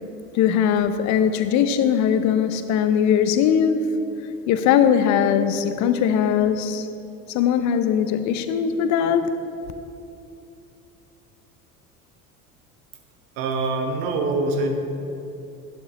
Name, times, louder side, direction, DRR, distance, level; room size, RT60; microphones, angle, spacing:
voice 1, 0.3-3.9 4.5-6.9 7.3-9.3, left 8 dB, 40° left, 0.7 m, -20 dB
voice 2, 13.4-14.8, right 2 dB, 55° right, 1.3 m, -24 dB
11.0 x 11.0 x 3.0 m
figure-of-eight pair, 65°, 45 cm